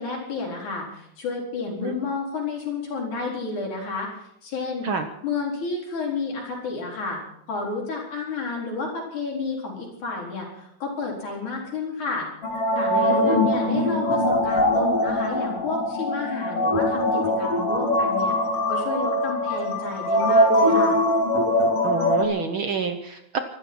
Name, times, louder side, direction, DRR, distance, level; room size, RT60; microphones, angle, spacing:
voice 1, 0.0-4.1 4.4-4.9 5.2-7.2 7.5-12.3 12.8-18.3 18.7-21.0, left 4 dB, 90° left, -1 dB, 5.7 m, -31 dB
sound 1, 12.4-22.2, left 1 dB, 55° left, 3.3 m, -22 dB
voice 2, 12.9-13.4 21.8-23.4, right 5 dB, 60° right, 7 dB, 1.4 m, -27 dB
25.0 x 13.0 x 4.3 m, 0.75 s
omnidirectional pair, 3.3 m